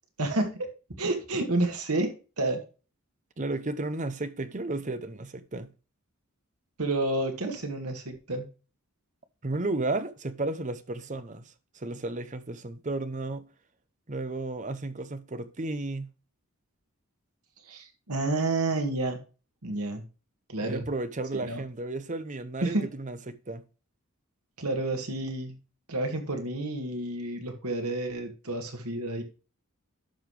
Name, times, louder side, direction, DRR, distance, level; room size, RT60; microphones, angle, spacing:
voice 1, 0.2-0.7 1.0-2.6 6.8-8.5 17.7-19.2 19.6-20.0 20.5-20.8 21.3-21.6 22.6-22.9 24.6-25.6 25.9-29.2, right 2 dB, 90° right, 2.1 m, -30 dB
voice 2, 3.4-5.7 9.4-13.5 14.1-16.1 20.6-23.6, right 2 dB, 35° right, 0.7 m, -33 dB
11.5 x 5.7 x 3.2 m
head